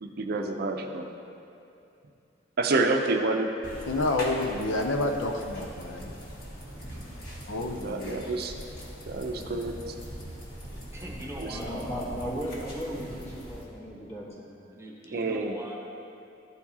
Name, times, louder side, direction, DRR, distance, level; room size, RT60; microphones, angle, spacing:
voice 1, 0.0-1.0 2.6-3.5 7.8-8.5 9.0-9.7 11.4-11.6 15.1-15.5, right 3 dB, 55° right, 4 dB, 0.5 m, -28 dB
sound 1, 3.6-13.6, equal, 50° left, 1.7 m, -41 dB
voice 2, 3.9-6.1 7.5-8.2 13.0-13.1, left 2 dB, 90° left, 4 dB, 0.6 m, -29 dB
voice 3, 10.9-11.8 13.1-13.3 14.7-15.8, equal, 15° right, -3 dB, 0.9 m, -41 dB
voice 4, 11.5-14.5, equal, 35° left, -5 dB, 1.5 m, -36 dB
13.0 x 4.6 x 2.8 m, 2.6 s
head